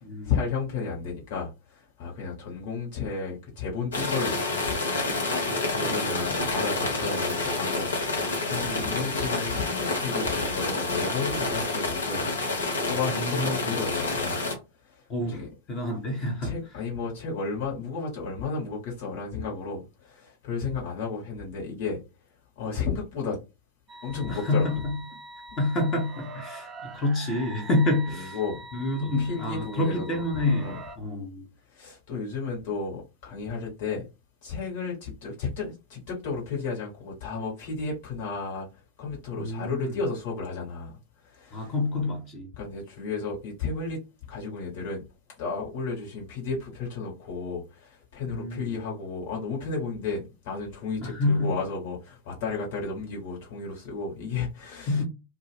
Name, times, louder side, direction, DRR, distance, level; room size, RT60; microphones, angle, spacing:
voice 1, 0.2-4.8 5.7-12.2 12.8-14.4 14.9-15.0 15.3-15.5 16.4-22.0 22.6-23.4 24.0-24.7 28.1-28.6 29.2-30.2 30.6-30.8 31.7-34.1 34.4-38.7 39.0-41.0 41.2-41.7 42.6-44.0 44.3-45.0 45.4-55.0, left 4 dB, 50° left, 1.3 m, -33 dB
sound 1, 3.9-14.5, left 3 dB, 70° left, 0.8 m, -28 dB
sound 2, 5.6-8.1 8.4-8.5 8.9-9.0 9.3-9.4, right 8 dB, 70° right, 0.6 m, -44 dB
voice 2, 5.8-6.4 8.6-9.1 13.1-13.6 15.1-15.4 15.7-16.6 24.3-25.0 25.6-28.4 28.7-31.4 39.4-39.9 41.5-42.5 48.3-48.8 51.0-51.6 54.9-55.0, left 2 dB, 30° left, 0.9 m, -28 dB
sound 3, 23.9-31.0, right 2 dB, 25° right, 0.4 m, -44 dB
2.3 x 2.0 x 3.3 m
figure-of-eight pair, 90°, 0 cm